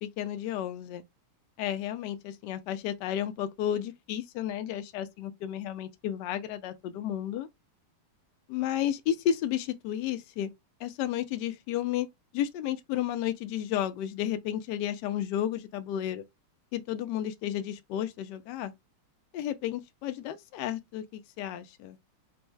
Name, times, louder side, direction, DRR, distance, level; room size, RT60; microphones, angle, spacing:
voice 1, 0.0-1.0 1.6-7.5 8.5-10.5 10.8-12.1 12.3-16.2 16.7-18.7 19.3-22.0, left 11 dB, 80° left, 0.9 m, -32 dB
4.3 x 2.0 x 4.5 m
omnidirectional pair, 2.4 m